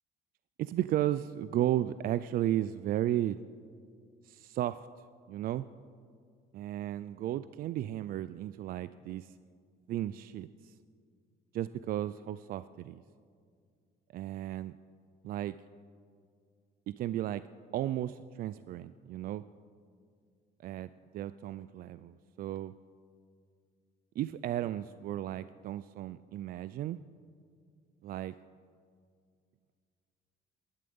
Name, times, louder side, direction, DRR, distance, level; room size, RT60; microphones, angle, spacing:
voice 1, 0.6-3.4 4.2-4.8 5.3-5.6 6.5-9.4 9.9-10.7 11.5-13.0 14.1-14.7 15.2-15.6 16.9-17.4 17.7-19.4 20.6-22.7 24.2-27.0 28.0-28.3, right 12 dB, 60° right, 15 dB, 0.4 m, -34 dB
18.5 x 11.5 x 5.4 m, 2.2 s
cardioid pair, 110°, 17 cm